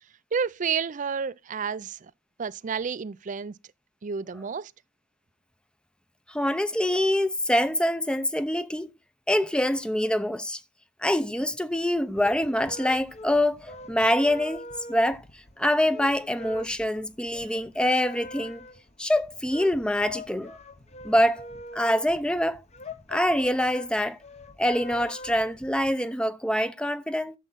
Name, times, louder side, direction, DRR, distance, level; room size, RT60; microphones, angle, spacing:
voice 1, 0.3-2.1 2.4-3.5 4.0-4.7, right 6 dB, 40° right, 0.4 m, -30 dB
voice 2, 6.3-8.9 9.3-10.6 11.0-14.6 14.9-15.2 15.6-18.6 19.0-20.6 21.0-21.5 21.7-22.6 23.1-24.2 24.6-27.3, left 1 dB, 5° left, 0.7 m, -25 dB
sound 1, 11.9-25.9, left 1 dB, 35° left, 0.9 m, -43 dB
11.5 x 7.3 x 4.1 m
head